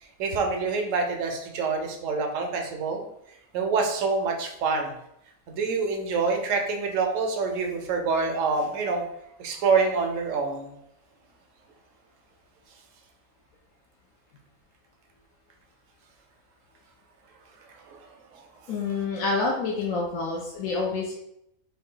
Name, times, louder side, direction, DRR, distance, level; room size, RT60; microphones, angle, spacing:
voice 1, 0.2-3.0 3.5-4.9 5.5-9.0 9.4-10.7 18.3-18.4, right 4 dB, 70° right, 3 dB, 1.0 m, -26 dB
voice 2, 18.7-21.1, left 3 dB, 80° left, -2 dB, 1.0 m, -27 dB
3.2 x 2.6 x 3.7 m, 0.80 s
omnidirectional pair, 1.5 m